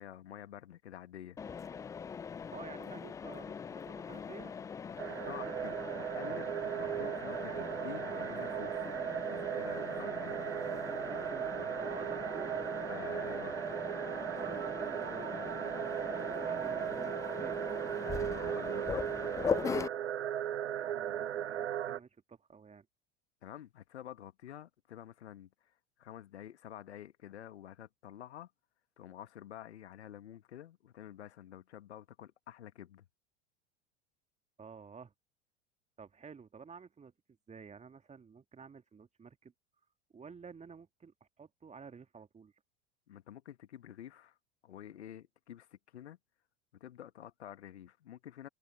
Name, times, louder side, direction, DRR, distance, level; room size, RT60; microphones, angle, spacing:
voice 1, 0.0-1.4 5.0-8.8 9.3-10.4 12.9-13.6 18.0-19.9 23.4-25.5 26.0-28.5 29.0-33.0 43.1-44.4 44.6-46.2 46.8-48.5, left 11 dB, 70° left, 1.9 m, -49 dB
Mechanisms, 1.4-19.9, left 6 dB, 10° left, 0.3 m, -41 dB
voice 2, 2.5-4.5 5.1-5.5 11.1-12.6 14.3-17.6 20.7-22.9 34.6-35.1 36.0-37.1 37.5-39.5 40.1-42.5, right 5 dB, 20° right, 2.0 m, -51 dB
sound 1, 5.0-22.0, right 10 dB, 75° right, 1.0 m, -37 dB
open air
figure-of-eight pair, 75°, 34 cm